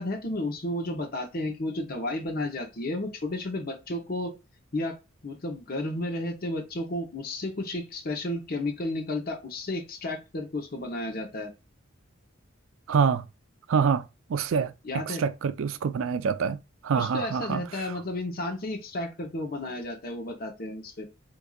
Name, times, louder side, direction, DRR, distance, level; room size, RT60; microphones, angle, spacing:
voice 1, 0.0-4.4 4.7-5.0 5.2-11.5 14.8-15.2 16.9-21.1, left 1 dB, 50° left, 0.8 m, -32 dB
voice 2, 12.9-13.3 13.7-14.7 15.1-17.9, right 6 dB, 90° right, 0.4 m, -26 dB
4.6 x 2.6 x 2.3 m
head